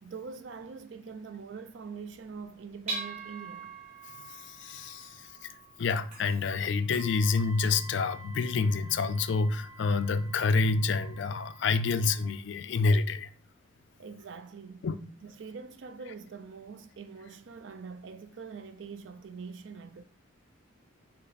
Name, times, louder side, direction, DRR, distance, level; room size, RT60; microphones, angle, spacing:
voice 1, 0.0-3.7 14.0-14.9 15.2-20.0, right 5 dB, 65° right, 0.4 m, -44 dB
sound 1, 2.1-12.4, right 3 dB, 35° right, 2.3 m, -45 dB
voice 2, 4.1-5.3 5.8-13.3 14.8-15.0, left 4 dB, 60° left, 0.3 m, -28 dB
5.4 x 2.0 x 4.0 m
head